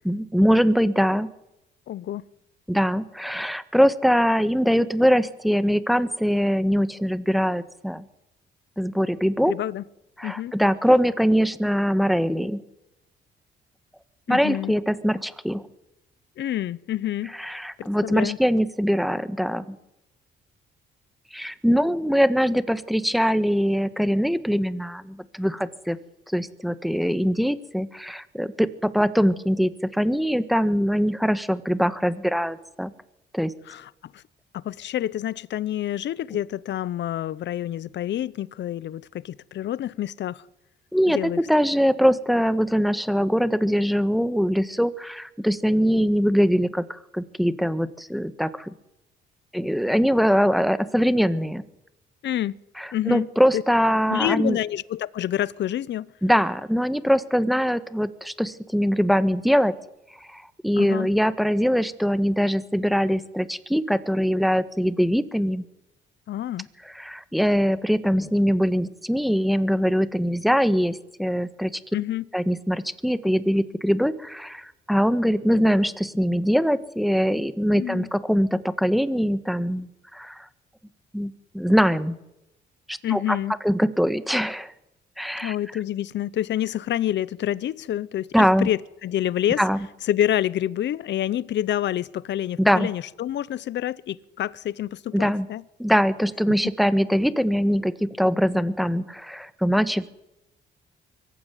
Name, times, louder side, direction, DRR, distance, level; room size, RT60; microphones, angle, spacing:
voice 1, 0.0-1.3 2.7-8.0 8.8-9.5 10.2-12.6 14.3-15.6 17.4-19.8 21.3-26.0 26.3-32.9 33.3-33.5 40.9-48.7 49.5-51.6 52.8-54.6 56.2-59.7 60.3-65.6 66.9-71.8 72.3-80.5 81.1-82.1 82.9-83.4 83.6-84.7 85.2-85.6 88.3-88.7 89.6-89.8 92.6-92.9 95.1-95.5 95.8-100.1, equal, ahead, 1.5 m, -22 dB
voice 2, 1.9-2.2 9.5-9.8 10.2-10.5 14.3-14.7 16.4-17.3 17.8-18.4 33.7-34.2 34.6-40.4 41.1-41.4 52.2-52.5 52.9-53.3 53.5-53.6 54.1-56.1 60.8-61.1 66.3-66.7 71.9-72.2 77.8-78.1 83.0-83.5 85.4-89.6 90.1-95.6, left 12 dB, 65° left, 0.8 m, -28 dB
23.5 x 15.5 x 9.3 m
cardioid pair, 90°, 20 cm